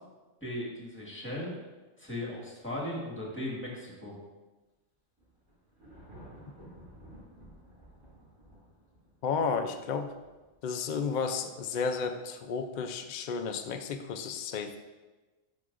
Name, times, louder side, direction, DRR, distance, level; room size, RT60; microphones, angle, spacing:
voice 1, 0.4-1.5 2.0-4.1, left 1 dB, 10° left, -3 dB, 1.5 m, -37 dB
Thunder, 5.2-10.6, equal, 90° right, 2.8 m, -53 dB
voice 2, 9.2-10.1 10.6-14.8, left 5 dB, 65° left, 5 dB, 0.4 m, -32 dB
10.5 x 5.2 x 2.5 m, 1.2 s
omnidirectional pair, 1.3 m